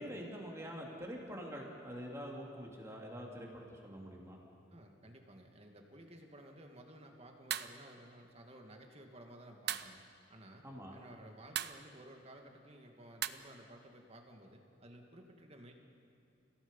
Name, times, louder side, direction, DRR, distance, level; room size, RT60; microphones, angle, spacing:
voice 1, 0.0-4.4 10.6-11.0, equal, 15° right, -1 dB, 3.1 m, -45 dB
voice 2, 4.7-10.0 10.3-10.6 10.9-15.7, right 1 dB, 35° right, 3 dB, 2.1 m, -55 dB
sound 1, 7.5-7.8 9.7-10.0 11.5-11.9 13.2-13.3, right 11 dB, 60° right, 0.7 m, -37 dB
30.0 x 17.0 x 5.5 m, 2.7 s
head